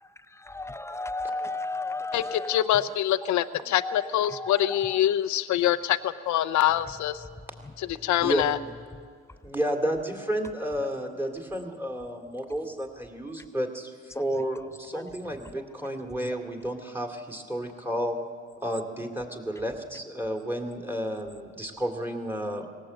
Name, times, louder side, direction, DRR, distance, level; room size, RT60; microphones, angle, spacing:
voice 1, 0.5-2.5 3.8-3.9, left 2 dB, 10° left, 14 dB, 0.5 m, -32 dB
voice 2, 2.1-7.2 7.8-8.6, left 12 dB, 70° left, 12 dB, 0.7 m, -25 dB
voice 3, 9.4-18.2 18.6-22.7, equal, 5° right, 3 dB, 2.5 m, -31 dB
18.5 x 18.0 x 7.8 m, 2.1 s
cardioid pair, 90°, 30 cm